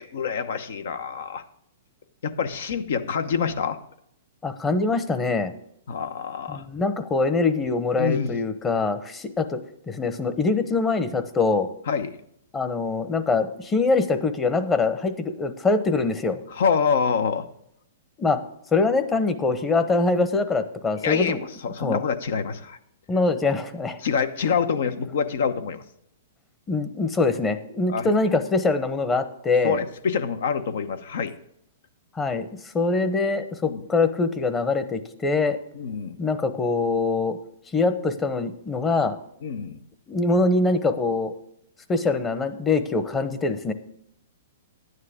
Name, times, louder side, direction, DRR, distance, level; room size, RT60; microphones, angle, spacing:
voice 1, 0.0-1.4 2.2-3.8 5.9-6.6 8.0-8.4 11.9-12.2 16.5-17.4 21.0-21.4 21.6-22.8 24.0-25.8 27.9-28.1 29.6-31.3 33.7-33.8 35.7-36.2 39.4-39.8, left 6 dB, 70° left, 10 dB, 1.0 m, -26 dB
voice 2, 4.4-5.5 6.5-11.7 12.5-16.4 18.2-18.4 18.7-21.4 21.8-22.0 23.1-24.0 26.7-29.8 32.1-32.5 32.7-35.6 36.2-37.4 37.7-39.2 40.1-41.3 41.9-43.7, left 3 dB, 15° left, 10 dB, 1.0 m, -23 dB
11.0 x 9.4 x 3.7 m, 0.73 s
hypercardioid pair, 130°, 0 cm